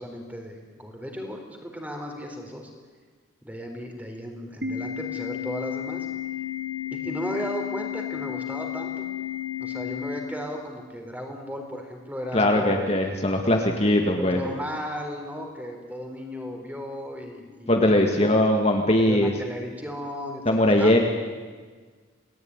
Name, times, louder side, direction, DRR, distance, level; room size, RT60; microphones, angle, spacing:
voice 1, 0.0-2.7 3.4-6.1 6.9-9.1 9.6-12.9 14.2-18.3 19.1-20.9, equal, 10° right, 3 dB, 4.1 m, -35 dB
Organ, 4.6-10.6, left 10 dB, 55° right, 4.1 m, -32 dB
voice 2, 12.3-14.4 17.7-19.3 20.5-21.0, left 1 dB, 30° left, 2 dB, 2.1 m, -20 dB
28.5 x 19.5 x 9.8 m, 1.5 s
head